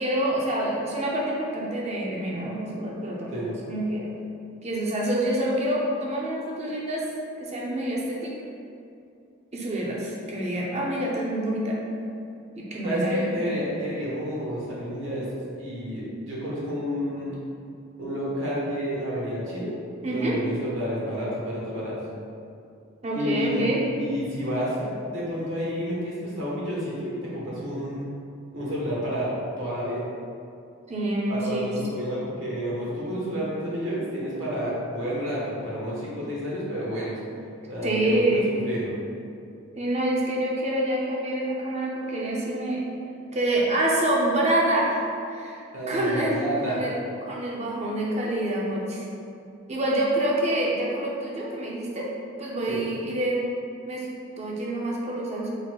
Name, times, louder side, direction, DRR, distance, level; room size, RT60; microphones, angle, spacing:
voice 1, 0.0-4.1 4.6-7.0 7.4-8.3 9.5-11.8 12.6-13.3 20.0-20.3 23.0-23.8 30.9-31.7 37.8-38.5 39.8-42.8 43.3-45.0 45.3-49.0 49.7-52.1 52.4-53.5 53.9-54.1 54.4-55.6, right 1 dB, 30° right, -4 dB, 0.6 m, -27 dB
voice 2, 12.8-15.3 15.6-17.3 18.0-19.7 20.0-22.0 23.1-23.6 23.9-28.1 28.5-29.3 29.6-30.0 31.3-37.2 37.7-38.9 45.7-46.8 52.7-52.8, equal, 70° right, -7 dB, 1.3 m, -30 dB
4.3 x 4.1 x 2.3 m, 2.5 s
head